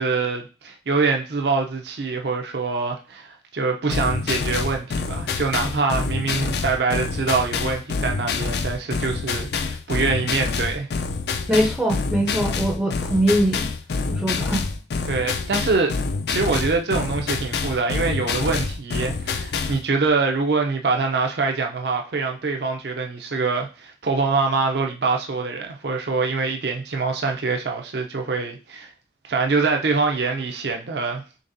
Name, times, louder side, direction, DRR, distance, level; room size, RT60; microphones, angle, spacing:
voice 1, 0.0-10.9 15.0-16.0 16.3-28.9 29.2-31.2, right 4 dB, 65° right, 3 dB, 0.5 m, -24 dB
sound 1, 3.9-19.8, left 4 dB, 60° left, 0.4 m, -27 dB
voice 2, 11.5-13.7 14.1-14.7, right 1 dB, 10° right, -2 dB, 0.5 m, -22 dB
3.9 x 3.3 x 2.6 m, 0.33 s
head